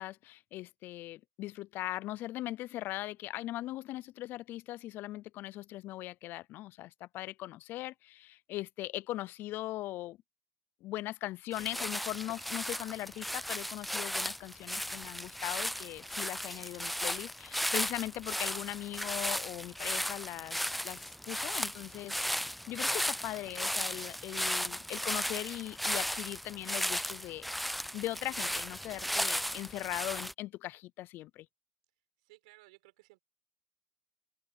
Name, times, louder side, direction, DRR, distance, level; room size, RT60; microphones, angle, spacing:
voice 1, 0.0-10.2 10.8-20.6 20.8-22.4 22.7-27.5 27.9-31.5, left 16 dB, 60° left, 0.5 m, -40 dB
sound 1, 11.5-30.3, equal, ahead, 0.3 m, -35 dB
voice 2, 32.2-33.2, right 22 dB, 90° right, 5.7 m, -59 dB
open air
supercardioid pair, 95°, 4 cm